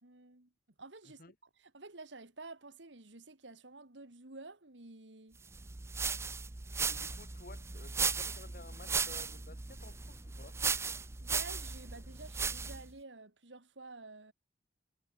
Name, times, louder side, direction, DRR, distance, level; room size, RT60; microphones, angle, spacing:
voice 1, 0.0-0.5 0.8-5.4 11.2-14.3, right 3 dB, 85° right, 2.4 m, -51 dB
sound 1, 5.5-12.9, right 5 dB, 15° right, 0.4 m, -36 dB
voice 2, 6.9-10.6, left 3 dB, 50° left, 1.3 m, -54 dB
head